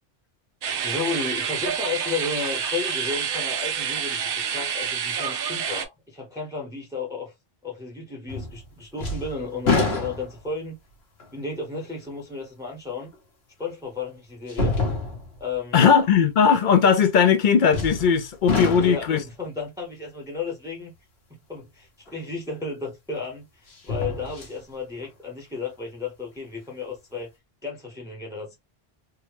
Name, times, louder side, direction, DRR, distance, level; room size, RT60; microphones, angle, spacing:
sound 1, 0.6-5.9, right 7 dB, 65° right, 0.8 m, -28 dB
voice 1, 0.8-7.3 7.6-10.8 11.3-13.1 13.6-14.8 15.4-15.9 18.7-20.9 21.5-27.3 27.6-28.6, left 4 dB, 5° right, 0.8 m, -33 dB
sound 2, 8.3-8.7 9.0-10.6 11.2-11.3 13.1-13.2 14.5-15.4 17.7-18.2 18.5-19.2 22.2-22.3 23.7-24.6 25.0-25.1, left 3 dB, 85° left, 1.3 m, -27 dB
voice 2, 15.7-19.2, left 7 dB, 60° left, 0.6 m, -18 dB
3.5 x 2.1 x 3.0 m
omnidirectional pair, 1.0 m